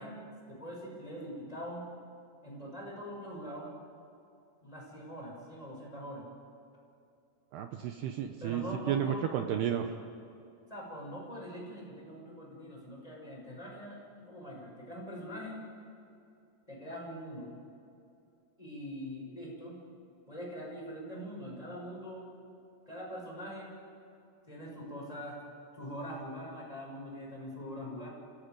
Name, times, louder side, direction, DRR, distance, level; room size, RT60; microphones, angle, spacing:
voice 1, 0.0-1.9 2.4-3.7 4.6-6.3 8.4-9.3 10.7-15.6 16.7-17.5 18.6-19.8 20.3-22.3 22.9-23.7 24.5-25.4 25.8-28.1, equal, 5° left, -2 dB, 5.5 m, -43 dB
voice 2, 7.5-9.9, right 9 dB, 80° right, 6 dB, 2.3 m, -32 dB
30.0 x 16.5 x 9.2 m, 2.6 s
omnidirectional pair, 5.9 m